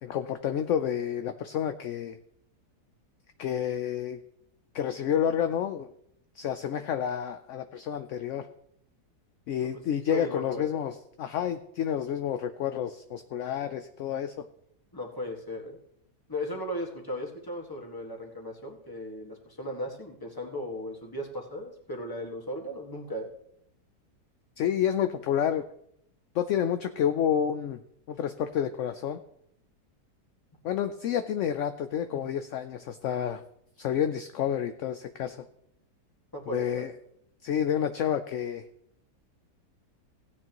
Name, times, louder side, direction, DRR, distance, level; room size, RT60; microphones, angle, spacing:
voice 1, 0.0-2.2 3.4-4.2 4.7-5.9 6.4-8.5 9.5-14.3 24.6-25.6 26.3-27.8 28.1-29.2 30.6-33.4 33.8-35.4 36.5-36.9 37.4-38.6, left 9 dB, 65° left, 9 dB, 0.7 m, -29 dB
voice 2, 9.7-10.7 14.9-15.8 16.3-23.3 36.3-36.8, left 1 dB, 15° left, 0 dB, 1.6 m, -37 dB
16.5 x 9.6 x 3.0 m, 0.74 s
omnidirectional pair, 1.7 m